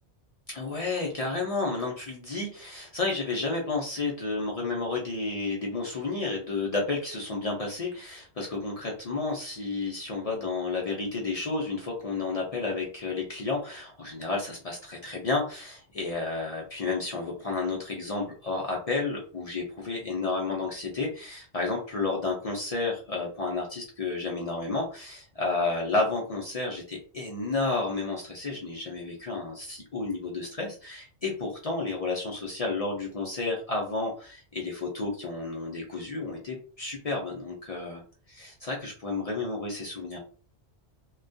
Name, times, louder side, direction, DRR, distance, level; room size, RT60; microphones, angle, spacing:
voice 1, 0.5-38.0 38.3-40.2, left 3 dB, 60° left, -1 dB, 0.4 m, -31 dB
2.2 x 2.2 x 2.5 m, 0.40 s
omnidirectional pair, 1.2 m